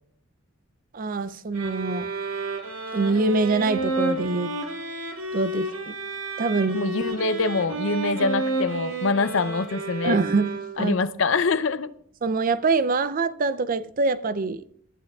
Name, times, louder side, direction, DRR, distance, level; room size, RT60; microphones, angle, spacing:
voice 1, 0.9-2.1 2.9-4.5 5.3-5.9 6.4-6.8 10.0-11.0 12.2-14.6, right 3 dB, 45° right, 0.5 m, -24 dB
sound 1, 1.5-11.0, right 2 dB, 85° right, 2.1 m, -31 dB
voice 2, 6.7-10.2 10.8-11.9, left 3 dB, 65° left, 0.6 m, -24 dB
25.0 x 12.0 x 2.4 m
head